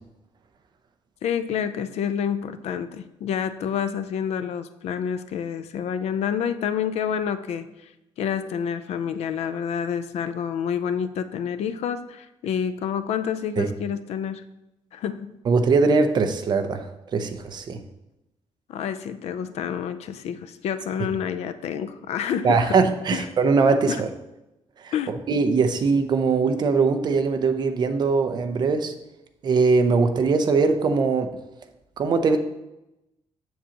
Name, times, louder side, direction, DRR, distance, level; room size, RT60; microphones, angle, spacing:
voice 1, 1.2-7.7 8.2-14.4 14.9-15.4 18.7-22.8 23.1-23.3 23.9-24.0 24.9-25.1, left 8 dB, 70° left, 12 dB, 0.5 m, -28 dB
voice 2, 15.5-16.9 17.1-17.8 22.4-24.1 24.8-24.9 25.3-28.9 29.4-31.3 32.0-32.4, right 4 dB, 40° right, 7 dB, 0.6 m, -21 dB
7.4 x 6.9 x 2.9 m, 0.93 s
cardioid pair, 170°, 11 cm